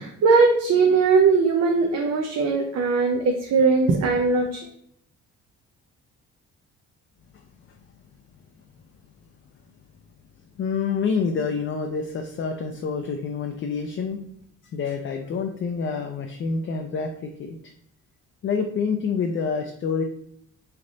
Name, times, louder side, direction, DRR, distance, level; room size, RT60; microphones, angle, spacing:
voice 1, 0.0-4.6, right 4 dB, 60° right, 2 dB, 0.6 m, -20 dB
voice 2, 10.6-14.2 14.7-17.7 18.4-20.0, left 5 dB, 40° left, 3 dB, 0.4 m, -27 dB
3.3 x 2.5 x 3.9 m, 0.71 s
cardioid pair, 90°, 30 cm